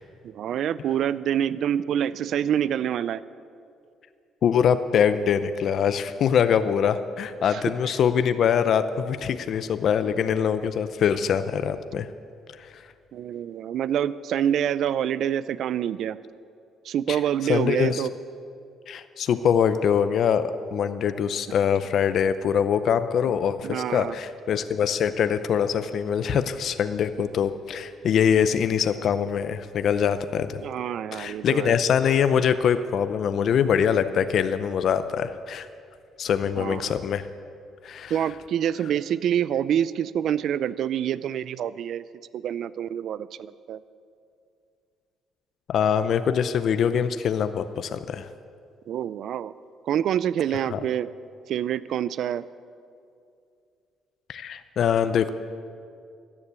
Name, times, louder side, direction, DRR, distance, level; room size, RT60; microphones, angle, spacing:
voice 1, 0.2-3.2 7.5-7.6 13.1-16.2 16.8-18.1 23.6-24.2 30.6-31.8 36.6-37.0 38.1-42.0 42.3-43.8 48.9-49.5 49.9-51.1 51.5-52.4, right 10 dB, 65° right, 17 dB, 0.4 m, -26 dB
voice 2, 4.4-12.1 12.6-12.8 17.1-17.2 17.5-18.0 18.9-30.6 31.1-35.7 36.2-37.3 37.8-38.2 45.7-48.3 50.7-50.8 54.3-55.3, left 8 dB, 55° left, 11 dB, 0.6 m, -23 dB
14.0 x 9.8 x 8.2 m, 2.4 s
cardioid pair, 115°, 0 cm